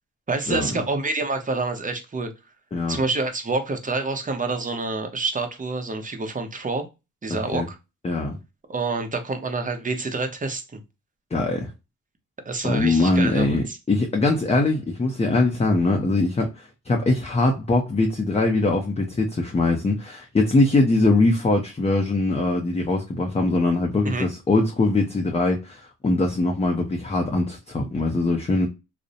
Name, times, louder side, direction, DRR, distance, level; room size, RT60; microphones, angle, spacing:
voice 1, 0.3-2.3 2.9-6.9 7.2-7.8 8.7-10.8 12.5-13.8 24.0-24.3, right 3 dB, 25° right, 0.7 m, -27 dB
voice 2, 7.3-7.7 8.0-8.4 11.3-11.7 12.6-28.7, left 2 dB, 20° left, 0.5 m, -22 dB
2.6 x 2.0 x 2.5 m
cardioid pair, 75°, 33 cm